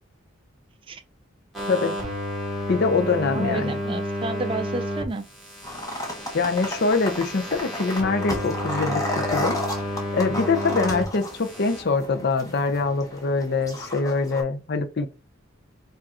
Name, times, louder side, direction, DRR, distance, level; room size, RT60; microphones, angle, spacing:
sound 1, 1.5-5.0 5.4-11.0 11.3-11.8, left 1 dB, ahead, 1.7 m, -31 dB
voice 1, 2.7-3.8 6.3-9.6 10.1-15.1, left 4 dB, 50° left, 0.6 m, -24 dB
voice 2, 3.3-5.2, right 3 dB, 25° right, 0.4 m, -31 dB
sound 2, 5.6-14.4, left 1 dB, 15° left, 1.0 m, -33 dB
5.0 x 2.5 x 4.2 m
head